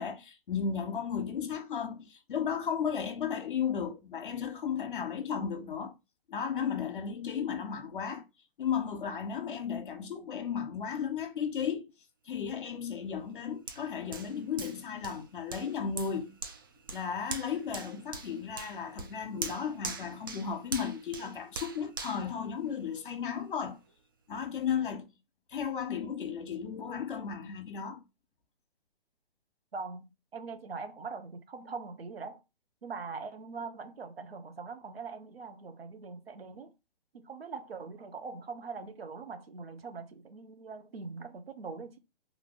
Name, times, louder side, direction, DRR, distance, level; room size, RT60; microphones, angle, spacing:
voice 1, 0.0-5.9 6.3-8.2 8.6-11.9 12.2-16.3 16.9-23.8 24.3-25.1 25.5-28.0, left 7 dB, 55° left, 1.1 m, -34 dB
Hands, 13.7-23.2 23.7-23.8, right 4 dB, 25° right, 0.3 m, -43 dB
voice 2, 29.7-32.4 32.8-36.7 37.1-42.0, right 4 dB, 75° right, 0.9 m, -42 dB
3.9 x 2.9 x 3.8 m
figure-of-eight pair, 130°, 30 cm